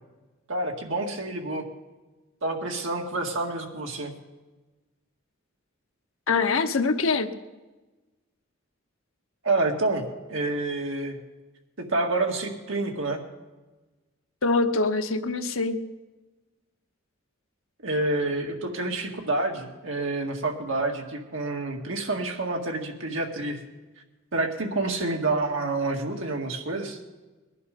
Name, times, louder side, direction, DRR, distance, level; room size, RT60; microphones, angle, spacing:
voice 1, 0.5-1.6 2.4-4.1 9.4-10.0 10.3-11.2 11.9-13.2 17.8-23.6 24.3-27.0, right 2 dB, 70° right, 2 dB, 2.0 m, -28 dB
voice 2, 6.3-7.3 14.4-15.8, left 4 dB, 85° left, 7 dB, 1.0 m, -24 dB
20.0 x 11.0 x 5.3 m, 1.2 s
head